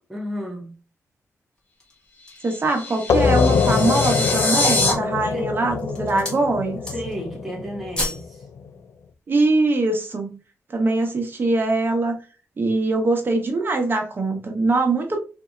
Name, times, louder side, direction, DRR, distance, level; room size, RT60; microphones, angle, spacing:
voice 1, 0.1-0.8 5.3-5.5 6.9-8.4, equal, 5° right, 0.8 m, -32 dB
sound 1, 1.6-2.6 3.2-3.3 3.7-4.3 5.0-5.4 5.7-6.5 6.7-7.3 7.5-8.3 8.6-8.8, left 1 dB, 15° left, 1.2 m, -32 dB
sound 2, 2.2-4.9, left 2 dB, 35° left, 1.1 m, -24 dB
voice 2, 2.4-6.8 9.3-10.3 10.7-12.1 12.6-15.2, right 2 dB, 40° right, 0.9 m, -22 dB
sound 3, 3.1-8.4, left 5 dB, 65° left, 0.4 m, -23 dB
3.9 x 2.7 x 2.3 m
wide cardioid pair, 115°, 5 cm